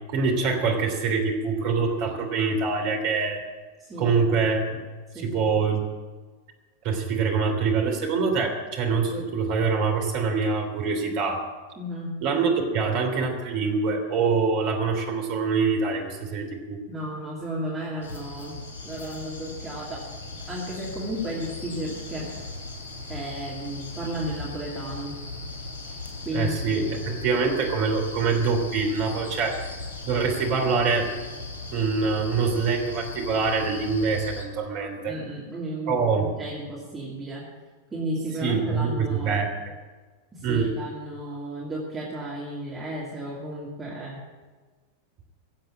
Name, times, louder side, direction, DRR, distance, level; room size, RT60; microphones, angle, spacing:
voice 1, 0.1-3.4 4.0-4.8 5.1-5.8 6.8-11.5 12.2-16.8 26.3-29.7 30.0-31.1 31.7-35.2 35.9-36.3 38.4-39.5 40.4-40.8, right 4 dB, 45° right, 2 dB, 3.0 m, -25 dB
voice 2, 3.8-4.2 5.1-5.6 11.8-12.3 16.9-18.6 18.8-20.1 20.5-22.3 23.1-25.2 25.9-26.8 35.1-37.5 37.9-39.4 40.3-44.2, right 1 dB, 15° right, -5 dB, 2.7 m, -34 dB
sound 1, 18.0-34.4, left 3 dB, 60° left, 2.9 m, -38 dB
16.5 x 7.8 x 8.6 m, 1.4 s
figure-of-eight pair, 90°, 0 cm